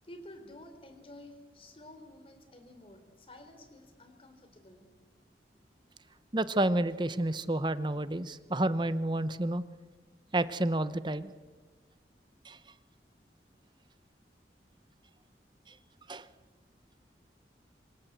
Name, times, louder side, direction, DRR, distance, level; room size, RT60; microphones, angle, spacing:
voice 1, 0.0-4.9, left 1 dB, 30° left, 8 dB, 3.6 m, -51 dB
voice 2, 6.3-9.6 10.3-11.3 12.4-12.6 16.1-16.2, right 1 dB, 25° right, 14 dB, 0.8 m, -30 dB
27.5 x 25.0 x 8.1 m, 1.3 s
head